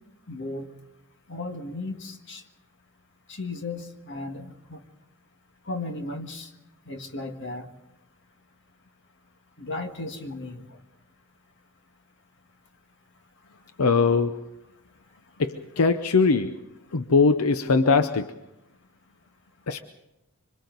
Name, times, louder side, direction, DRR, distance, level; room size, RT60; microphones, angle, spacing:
voice 1, 0.3-0.7 1.3-2.4 3.3-4.8 5.7-6.5 6.9-7.7 9.6-10.6, left 2 dB, 55° left, 5 dB, 1.8 m, -35 dB
voice 2, 13.8-14.5 15.4-16.6 16.9-18.3 19.7-19.8, left 4 dB, 85° left, 9 dB, 0.7 m, -21 dB
26.0 x 25.0 x 4.0 m, 0.94 s
head